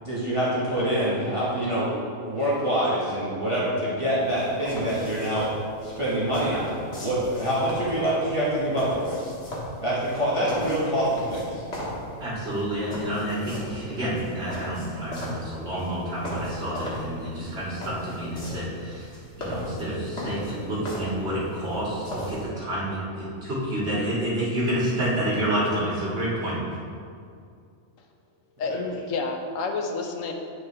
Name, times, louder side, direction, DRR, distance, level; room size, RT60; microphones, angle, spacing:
voice 1, 0.0-1.9 2.2-5.5 5.8-9.2 9.8-11.6 28.7-28.8, right 1 dB, 25° right, -8 dB, 1.2 m, -25 dB
sound 1, 4.2-22.5, left 1 dB, 55° left, 1.7 m, -38 dB
voice 2, 12.2-19.1 19.4-26.6, right 1 dB, 55° right, -9 dB, 2.2 m, -29 dB
voice 3, 28.6-30.3, left 4 dB, 90° left, 3 dB, 1.1 m, -29 dB
8.8 x 4.8 x 3.3 m, 2.3 s
omnidirectional pair, 1.3 m